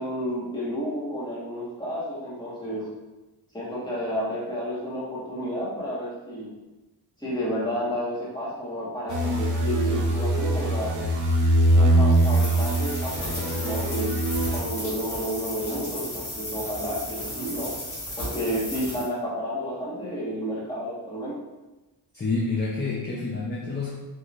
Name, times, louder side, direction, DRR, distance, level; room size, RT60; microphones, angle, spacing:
voice 1, 0.0-2.9 3.5-6.5 7.2-11.0 11.7-14.1 14.4-17.7 18.2-21.3, equal, 10° left, -8 dB, 1.3 m, -31 dB
sound 1, 9.1-14.6, right 1 dB, 50° right, 0.6 m, -22 dB
sound 2, 12.1-19.1, equal, 70° left, 1.4 m, -35 dB
voice 2, 22.1-23.9, left 3 dB, 25° left, -4 dB, 0.6 m, -28 dB
3.0 x 2.7 x 2.5 m, 1.1 s
cardioid pair, 55°, 40 cm